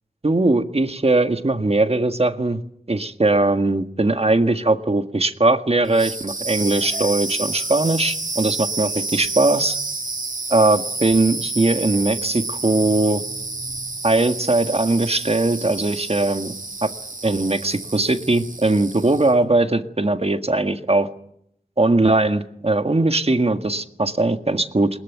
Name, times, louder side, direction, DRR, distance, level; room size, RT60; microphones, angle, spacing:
voice 1, 0.2-2.6 2.9-9.8 10.5-13.2 14.0-16.5 16.8-16.9 17.2-21.1 21.8-24.9, right 2 dB, 40° right, 8 dB, 1.6 m, -20 dB
sound 1, 5.8-19.4, right 3 dB, 55° right, 2.8 m, -30 dB
21.0 x 21.0 x 9.3 m, 0.73 s
wide cardioid pair, 70°, 16 cm